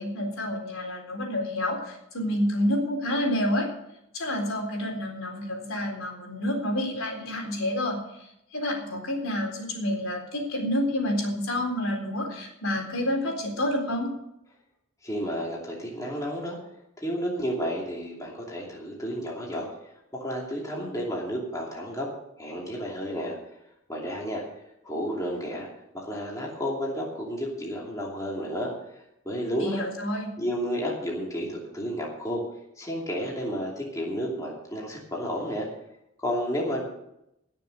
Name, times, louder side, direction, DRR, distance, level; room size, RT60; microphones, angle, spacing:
voice 1, 0.0-3.7 4.1-8.0 8.5-14.1 29.6-30.3, left 1 dB, 75° left, 1 dB, 3.9 m, -28 dB
voice 2, 15.0-16.6 17.0-19.7 20.1-22.1 22.4-23.4 23.9-24.4 24.8-25.7 25.9-28.7 29.2-29.8 30.4-32.4 32.8-35.7 36.2-36.8, equal, 15° left, -3 dB, 2.7 m, -31 dB
19.0 x 6.8 x 6.6 m, 0.81 s
head